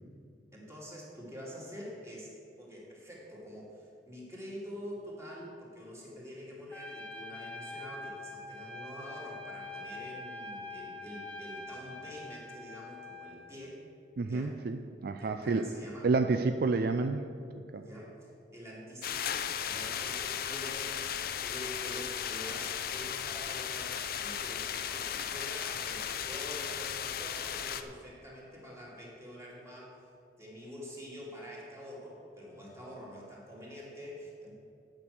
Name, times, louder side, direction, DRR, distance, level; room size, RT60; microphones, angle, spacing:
voice 1, 0.5-2.3 2.6-13.8 14.2-14.6 15.2-16.1 17.7-21.1 21.4-30.1 30.4-34.6, equal, 15° right, -4 dB, 2.4 m, -46 dB
Trumpet, 6.7-13.4, left 2 dB, 10° left, 1.0 m, -44 dB
voice 2, 14.2-15.6 16.0-17.3 17.7-17.8, right 3 dB, 60° right, 7 dB, 0.4 m, -29 dB
sound 1, 19.0-27.8, left 8 dB, 55° left, 0.5 m, -36 dB
8.9 x 6.2 x 7.9 m, 2.7 s
head